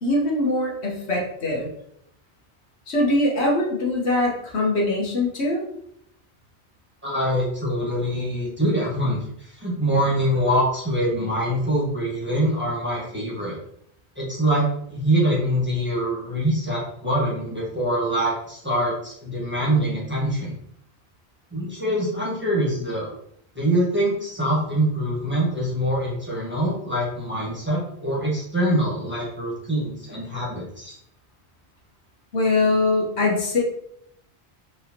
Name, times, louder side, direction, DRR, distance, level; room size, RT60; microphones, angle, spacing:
voice 1, 0.0-1.7 2.9-5.6 32.3-33.6, left 2 dB, 85° left, -1 dB, 1.3 m, -22 dB
voice 2, 7.0-13.6 14.1-20.5 21.5-23.1 23.5-30.9, right 1 dB, 10° right, -6 dB, 1.3 m, -24 dB
4.4 x 3.1 x 2.9 m, 0.71 s
omnidirectional pair, 1.1 m